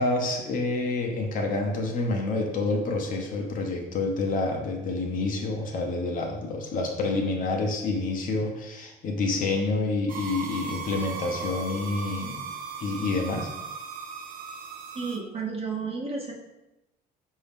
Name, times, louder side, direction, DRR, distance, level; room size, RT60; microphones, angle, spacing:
voice 1, 0.0-12.5 12.8-13.5, left 3 dB, 55° left, 2 dB, 0.8 m, -28 dB
sound 1, 10.1-15.2, right 5 dB, 55° right, 0.4 m, -37 dB
voice 2, 14.9-16.3, right 4 dB, 35° right, -2 dB, 1.0 m, -32 dB
4.6 x 2.7 x 3.5 m, 0.95 s
cardioid pair, 110°, 17 cm